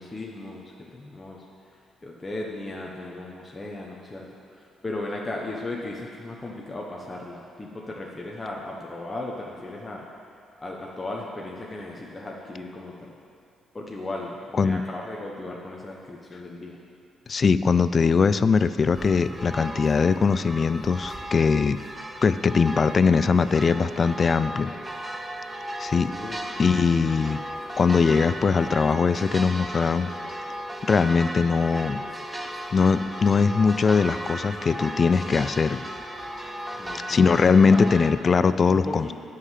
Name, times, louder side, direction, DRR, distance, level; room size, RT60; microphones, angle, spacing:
voice 1, 0.0-10.1 10.6-13.2 13.7-16.8 26.0-27.0 36.8-37.3 37.7-37.8 38.7-39.1, left 2 dB, 20° left, -2 dB, 1.1 m, -36 dB
voice 2, 17.3-21.8 22.2-24.7 25.8-26.1 26.6-27.4 27.8-30.1 30.8-32.0 32.7-35.8 37.1-39.1, left 5 dB, 40° left, 13 dB, 0.3 m, -21 dB
sound 1, 18.9-38.1, equal, 10° right, 0.8 m, -36 dB
9.7 x 5.7 x 7.5 m, 2.4 s
cardioid pair, 90°, 0 cm